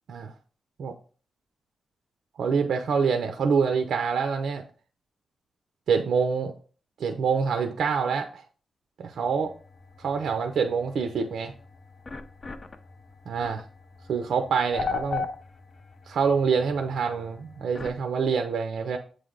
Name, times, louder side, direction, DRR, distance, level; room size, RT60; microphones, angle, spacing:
voice 1, 2.4-4.6 5.9-6.5 7.0-8.4 9.0-9.5 10.0-11.5 13.3-13.6 14.1-15.3 16.1-19.0, right 5 dB, 75° right, 6 dB, 0.6 m, -26 dB
sound 1, 9.1-18.0, left 5 dB, 35° left, 0.6 m, -39 dB
7.9 x 3.3 x 3.8 m, 0.41 s
cardioid pair, 105°, 0 cm